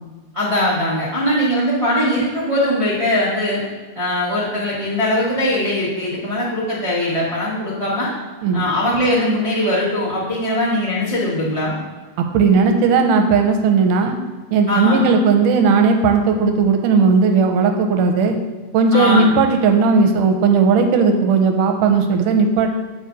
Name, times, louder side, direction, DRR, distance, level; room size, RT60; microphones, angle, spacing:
voice 1, 0.3-3.6 3.9-8.1 8.5-11.7 14.7-15.1 18.9-19.3, left 1 dB, 25° right, -9 dB, 0.6 m, -20 dB
voice 2, 12.2-14.2 14.5-18.4 18.7-22.7, right 4 dB, 85° right, 5 dB, 2.2 m, -16 dB
7.8 x 4.9 x 4.0 m, 1.4 s
omnidirectional pair, 3.8 m